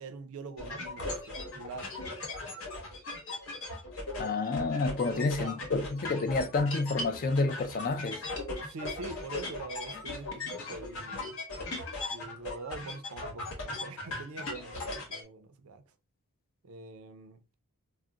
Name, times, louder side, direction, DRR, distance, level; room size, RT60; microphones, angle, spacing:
voice 1, 0.0-1.9 5.1-5.6 8.6-11.3 12.1-15.8 16.6-17.4, right 3 dB, 70° right, 0.5 m, -44 dB
sound 1, 0.6-15.2, left 2 dB, 65° left, 0.9 m, -38 dB
voice 2, 4.2-8.2, left 3 dB, 40° left, 0.3 m, -29 dB
2.3 x 2.1 x 3.7 m
head